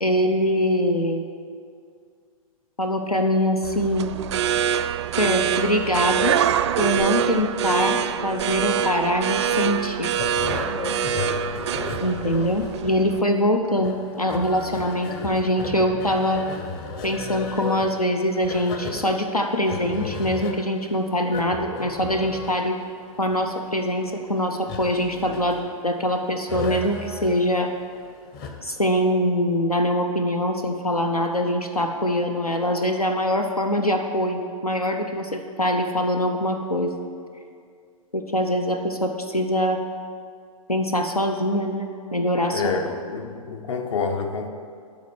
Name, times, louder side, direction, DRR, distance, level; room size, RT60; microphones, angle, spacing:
voice 1, 0.0-1.3 2.8-4.1 5.2-6.4 6.8-10.1 12.0-16.5 17.0-22.8 23.2-27.7 28.6-36.9 38.1-39.8 40.7-42.7, equal, 90° left, 5 dB, 0.8 m, -23 dB
sound 1, 3.6-13.2, right 8 dB, 50° right, 0.4 m, -25 dB
sound 2, 10.2-28.8, left 4 dB, 35° left, 1.1 m, -35 dB
voice 2, 42.5-44.5, left 5 dB, 55° left, 6 dB, 1.0 m, -27 dB
12.0 x 4.2 x 8.0 m, 2.2 s
figure-of-eight pair, 110°, 18 cm